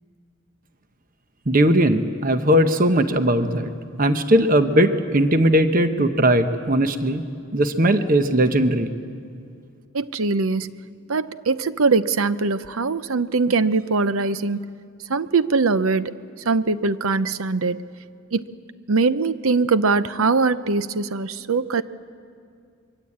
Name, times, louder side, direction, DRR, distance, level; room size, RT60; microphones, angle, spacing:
voice 1, 1.5-3.7 4.0-7.2 7.5-8.9, right 1 dB, 40° right, 9 dB, 1.0 m, -18 dB
voice 2, 9.9-10.7 11.1-14.7 15.1-16.2 16.5-17.8 18.3-18.5 18.9-21.8, right 4 dB, 75° right, 14 dB, 0.7 m, -21 dB
25.0 x 23.0 x 8.6 m, 2.3 s
head